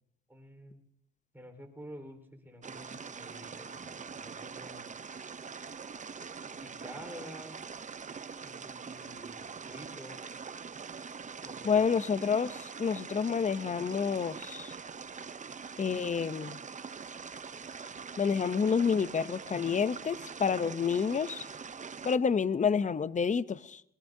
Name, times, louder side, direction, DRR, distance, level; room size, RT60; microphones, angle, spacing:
voice 1, 0.3-0.8 1.3-4.8 6.3-7.6 8.4-10.3 11.4-11.9, equal, 5° right, 4.1 m, -49 dB
sound 1, 2.6-22.2, right 5 dB, 25° right, 0.6 m, -43 dB
voice 2, 11.6-14.7 15.8-16.6 18.2-21.5 22.0-23.9, left 6 dB, 25° left, 0.6 m, -29 dB
22.5 x 21.5 x 2.7 m
cardioid pair, 90°, 30 cm